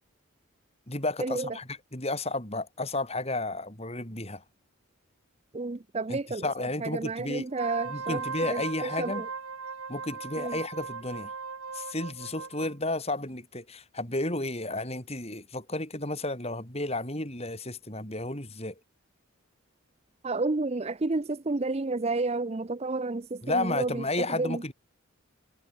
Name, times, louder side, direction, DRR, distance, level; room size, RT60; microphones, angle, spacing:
voice 1, 0.9-4.4 6.1-7.5 7.9-9.3 9.9-11.3 11.7-18.8 23.4-24.7, left 2 dB, 30° left, 6.8 m, -32 dB
voice 2, 5.5-6.4 6.8-8.2 8.5-9.2 10.4-10.5 20.2-24.0 24.4-24.6, right 3 dB, 30° right, 0.6 m, -30 dB
Wind instrument woodwind instrument, 7.5-12.7, right 5 dB, 80° right, 2.1 m, -38 dB
head